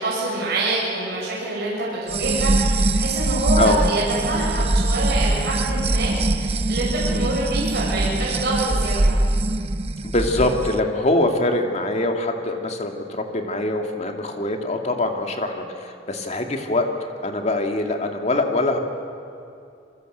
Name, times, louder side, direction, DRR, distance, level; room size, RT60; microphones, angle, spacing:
voice 1, 0.0-9.1, right 2 dB, 60° right, -6 dB, 6.7 m, -26 dB
sound 1, 2.1-10.7, right 2 dB, 35° right, 0.7 m, -22 dB
voice 2, 10.0-16.9 17.2-18.8, left 2 dB, 35° left, 4 dB, 2.5 m, -23 dB
27.5 x 24.0 x 8.1 m, 2.5 s
head